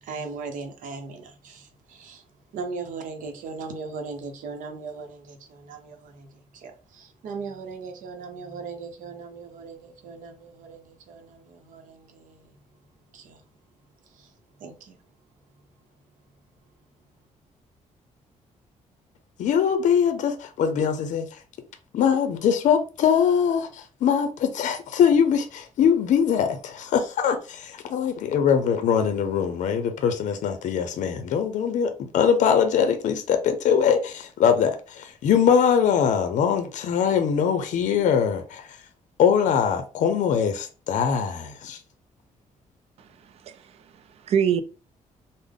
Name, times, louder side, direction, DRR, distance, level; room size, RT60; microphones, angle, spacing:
voice 1, 0.0-2.3 2.5-12.6 13.1-13.4 14.0-15.0, right 4 dB, 90° right, 0.7 m, -39 dB
voice 2, 19.4-21.4 21.9-38.8 39.2-41.8, left 7 dB, 70° left, 0.5 m, -22 dB
voice 3, 43.0-44.6, right 8 dB, 50° right, 0.4 m, -27 dB
3.5 x 2.0 x 3.6 m
cardioid pair, 155°, 13 cm